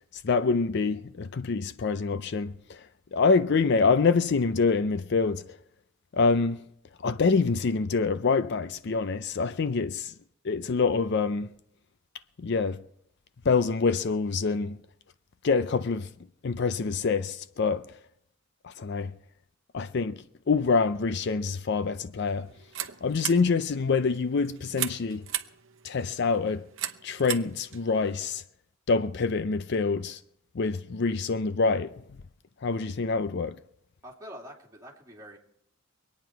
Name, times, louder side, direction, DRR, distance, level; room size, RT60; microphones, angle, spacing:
voice 1, 0.1-5.6 6.1-6.6 7.0-10.1 10.4-11.5 12.4-12.8 13.4-14.8 15.4-16.1 16.4-17.9 18.6-19.1 19.7-22.5 23.0-25.2 25.8-26.7 27.0-28.4 28.9-30.2 30.5-31.9 32.6-33.6, left 4 dB, 55° left, 0.5 m, -26 dB
sound 1, 22.2-28.4, right 12 dB, 65° right, 0.9 m, -38 dB
voice 2, 34.0-35.4, equal, 15° right, 2.6 m, -45 dB
24.0 x 9.4 x 4.6 m
head